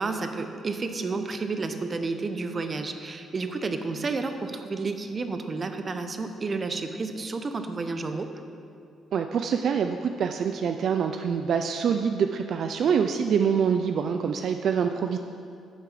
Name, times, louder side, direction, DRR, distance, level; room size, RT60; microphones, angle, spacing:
voice 1, 0.0-8.3, right 3 dB, 35° right, 8 dB, 0.8 m, -31 dB
voice 2, 9.1-15.2, right 7 dB, 65° right, 6 dB, 0.4 m, -25 dB
10.5 x 6.9 x 5.0 m, 2.5 s
cardioid pair, 90°, 0 cm